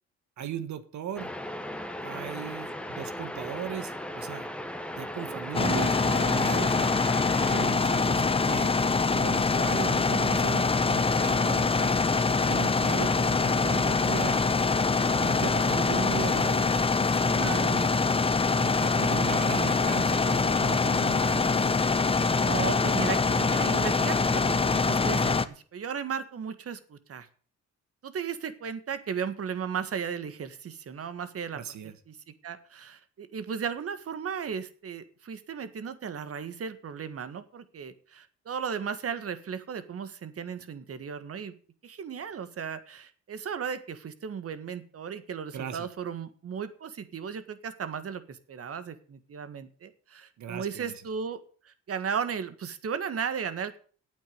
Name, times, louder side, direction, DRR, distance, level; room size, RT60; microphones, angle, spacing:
voice 1, 0.4-1.3 2.0-4.5 5.0-7.0 7.4-8.8 9.1-12.1 12.4-14.4 15.1-17.9 18.6-21.8 31.5-31.9 45.5-45.9 50.4-50.9, right 9 dB, 70° right, 11 dB, 1.6 m, -38 dB
sound 1, 1.2-7.7, left 1 dB, 5° left, 1.3 m, -37 dB
voice 2, 5.2-6.4 17.2-17.6 22.4-27.3 28.0-32.1 32.4-41.5 41.8-51.4 51.6-53.8, right 7 dB, 50° right, 12 dB, 1.6 m, -35 dB
sound 2, 5.5-25.5, left 4 dB, 20° left, 0.8 m, -24 dB
9.1 x 8.6 x 7.9 m, 0.43 s
cardioid pair, 90°, 30 cm